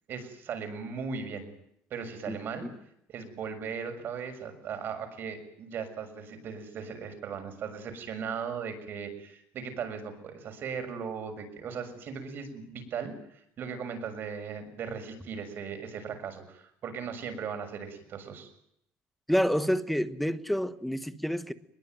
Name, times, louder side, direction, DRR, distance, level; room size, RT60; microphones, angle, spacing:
voice 1, 0.1-1.5 1.9-2.7 3.1-13.1 13.6-18.5, right 6 dB, 45° right, 7 dB, 6.6 m, -38 dB
voice 2, 19.3-21.5, equal, ahead, 10 dB, 1.4 m, -28 dB
24.0 x 22.0 x 9.3 m, 0.73 s
cardioid pair, 155°, 5 cm